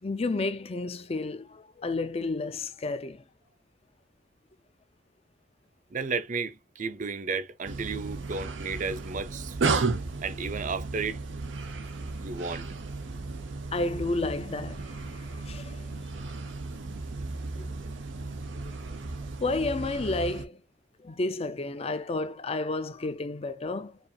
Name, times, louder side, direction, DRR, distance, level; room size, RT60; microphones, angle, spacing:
voice 1, 0.0-3.2 13.7-14.8 15.5-15.8 17.6-17.7 18.5-18.7 19.4-20.6 21.0-24.0, left 2 dB, 35° left, 0.5 m, -31 dB
voice 2, 5.9-9.6 10.2-11.2 12.2-12.7, right 4 dB, 45° right, 0.5 m, -33 dB
sound 1, 7.6-20.4, right 3 dB, 85° right, 0.6 m, -34 dB
4.8 x 2.5 x 2.6 m
head